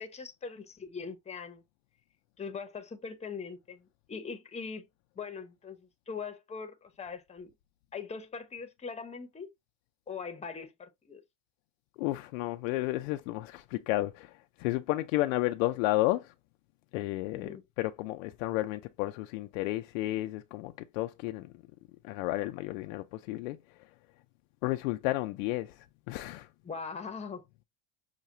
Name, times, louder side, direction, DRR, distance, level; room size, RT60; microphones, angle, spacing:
voice 1, 0.0-1.6 2.4-4.9 5.2-7.5 7.9-9.5 10.1-11.2 17.3-17.6 26.6-27.4, left 5 dB, 15° left, 0.8 m, -41 dB
voice 2, 12.0-16.3 16.9-21.5 22.0-23.6 24.6-26.5, left 17 dB, 85° left, 0.5 m, -32 dB
5.7 x 2.3 x 2.7 m
supercardioid pair, 120°, 39 cm